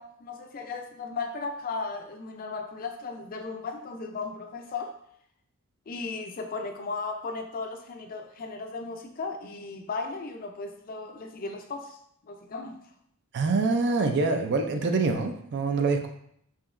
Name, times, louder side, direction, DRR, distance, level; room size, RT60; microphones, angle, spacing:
voice 1, 0.0-4.9 5.9-12.0 12.3-12.8, left 4 dB, 40° left, 4 dB, 0.4 m, -36 dB
voice 2, 13.3-16.1, right 3 dB, 50° right, 5 dB, 0.4 m, -25 dB
4.9 x 2.8 x 2.5 m, 0.69 s
head